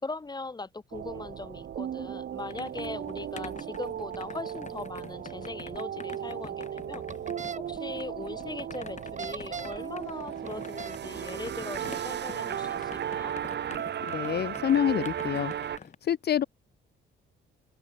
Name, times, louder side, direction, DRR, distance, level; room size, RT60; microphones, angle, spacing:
voice 1, 0.0-7.1 7.6-13.4, left 3 dB, 20° left, 3.1 m, -40 dB
sound 1, 0.9-15.8, right 9 dB, 60° right, 1.9 m, -36 dB
sound 2, 1.9-15.9, left 5 dB, 35° left, 4.1 m, -47 dB
sound 3, 7.1-7.6 9.0-9.9 10.5-11.0, right 5 dB, 40° right, 4.8 m, -38 dB
voice 2, 14.0-15.5 16.0-16.4, left 9 dB, 55° left, 1.0 m, -27 dB
cardioid pair, 90°, 20 cm